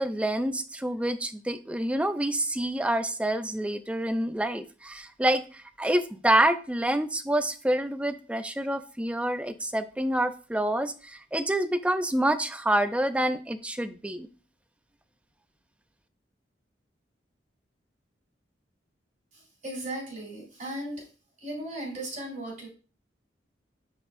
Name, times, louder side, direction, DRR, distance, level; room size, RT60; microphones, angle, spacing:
voice 1, 0.0-14.3, right 1 dB, 5° right, 9 dB, 0.4 m, -27 dB
voice 2, 19.3-21.1 21.4-22.7, right 1 dB, 40° right, -4 dB, 3.9 m, -37 dB
9.4 x 4.6 x 2.5 m, 0.36 s
head